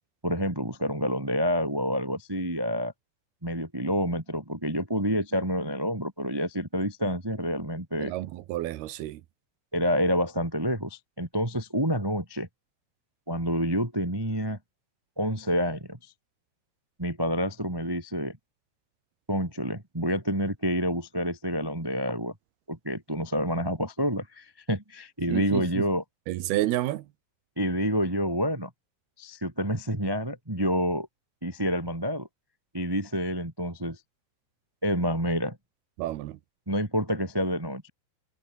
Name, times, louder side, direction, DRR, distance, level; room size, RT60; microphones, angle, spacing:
voice 1, 0.2-2.9 3.4-8.1 9.7-12.5 13.3-14.6 15.2-16.0 17.0-18.4 19.3-22.3 22.7-26.0 27.6-28.7 29.2-31.1 31.4-32.3 32.7-34.0 34.8-35.6 36.7-37.9, equal, 35° right, 0.3 m, -28 dB
voice 2, 8.0-9.2 25.3-25.8 26.3-27.1 36.0-36.4, right 15 dB, 70° right, 2.7 m, -30 dB
omnidirectional pair, 5.3 m